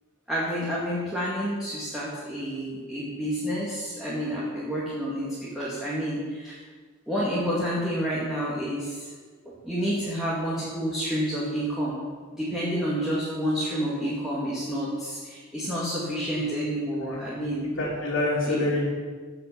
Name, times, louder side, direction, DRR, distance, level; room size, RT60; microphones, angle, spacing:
voice 1, 0.3-6.6 7.1-9.1 9.5-12.0 12.3-17.7 18.5-18.7, equal, ahead, -8 dB, 2.1 m, -29 dB
voice 2, 17.0-17.5 17.8-18.9, left 2 dB, 60° left, -9 dB, 3.0 m, -27 dB
16.0 x 6.0 x 6.9 m, 1.5 s
head